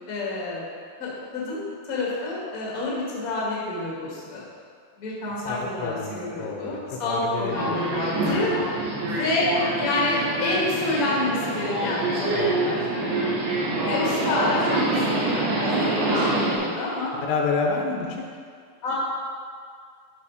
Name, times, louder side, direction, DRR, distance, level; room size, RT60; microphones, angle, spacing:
voice 1, 0.1-0.6 1.0-4.4 5.0-8.5 9.1-9.5 9.8-12.8 13.8-17.1 18.8-18.9, left 2 dB, 40° left, -6 dB, 1.2 m, -28 dB
voice 2, 5.5-7.8 8.4-8.9 9.1-9.2 12.3-12.5 17.2-18.2, left 4 dB, 90° left, 1 dB, 3.3 m, -29 dB
Subway metro underground, 7.5-16.6, right 2 dB, 60° right, 3.4 m, -26 dB
12.0 x 4.2 x 4.9 m, 2.1 s
omnidirectional pair, 5.1 m